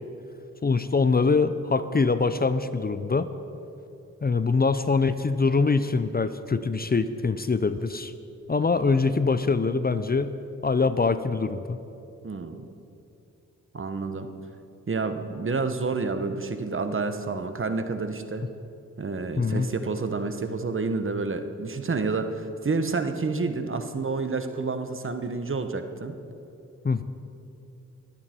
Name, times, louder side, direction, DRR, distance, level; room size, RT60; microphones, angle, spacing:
voice 1, 0.6-3.3 4.2-8.1 8.5-10.3 10.6-11.8 19.4-19.7 26.8-27.0, left 4 dB, 30° left, 12 dB, 0.6 m, -23 dB
voice 2, 12.2-12.7 13.7-14.3 14.9-18.4 19.0-26.1, right 4 dB, 40° right, 8 dB, 1.1 m, -29 dB
23.0 x 8.7 x 4.4 m, 2.7 s
cardioid pair, 55°, 32 cm